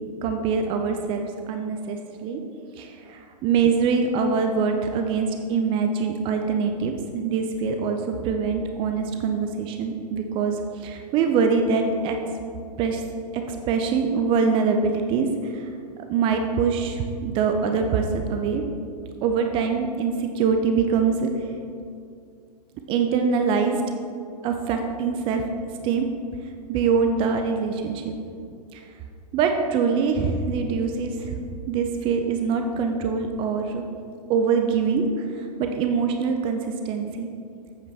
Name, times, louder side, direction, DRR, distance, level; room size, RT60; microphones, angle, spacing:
voice 1, 0.2-2.4 2.8-12.2 12.8-13.0 13.3-15.7 16.1-18.6 19.2-21.3 22.9-23.8 24.4-25.4 25.8-26.1 26.7-28.1 28.7-28.8 29.3-31.4 31.7-33.8 34.3-37.3, right 5 dB, 25° right, 5 dB, 0.5 m, -24 dB
8.1 x 8.1 x 3.4 m, 2.4 s
figure-of-eight pair, 105°, 21 cm